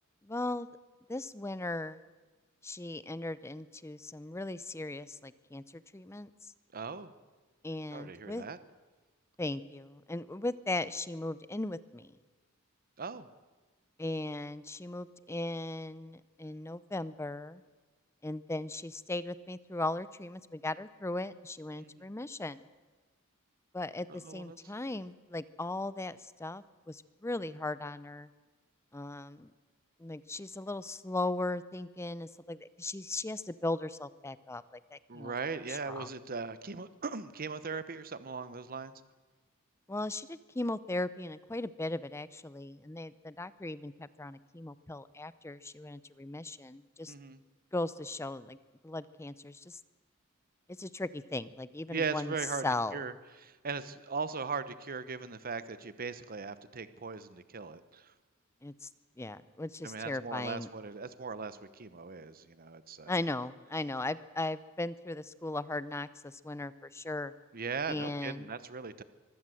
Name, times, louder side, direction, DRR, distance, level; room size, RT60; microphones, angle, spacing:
voice 1, 0.3-0.7 1.1-2.0 2.6-5.6 5.9-6.3 7.6-8.4 9.4-12.1 14.0-17.6 18.2-22.6 23.7-28.3 28.9-29.5 30.0-34.6 34.9-36.1 39.9-47.1 47.7-48.6 48.8-49.8 50.8-52.3 52.6-53.0 58.6-58.9 59.2-60.7 63.1-67.3 67.9-68.5, left 2 dB, 10° left, 16 dB, 0.6 m, -37 dB
voice 2, 6.7-7.1 7.9-8.6 13.0-13.3 21.7-22.1 24.1-24.6 35.1-38.9 47.1-47.4 51.9-52.7 52.9-58.1 59.8-63.1 67.5-69.0, right 5 dB, 45° right, 13 dB, 0.9 m, -39 dB
23.5 x 16.0 x 7.8 m, 1.3 s
head